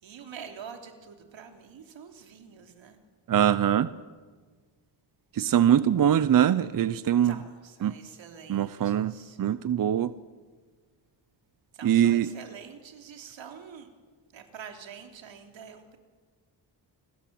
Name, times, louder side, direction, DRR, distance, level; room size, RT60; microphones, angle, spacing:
voice 1, 0.0-3.0 7.2-9.4 11.7-13.9 14.3-16.0, right 7 dB, 80° right, 4 dB, 3.5 m, -46 dB
voice 2, 3.3-3.9 5.3-7.3 7.8-7.9 8.5-9.1 9.4-10.1 11.8-12.3, right 10 dB, 45° right, 15 dB, 0.7 m, -22 dB
29.0 x 21.0 x 7.7 m, 1.4 s
wide cardioid pair, 130°, 45 cm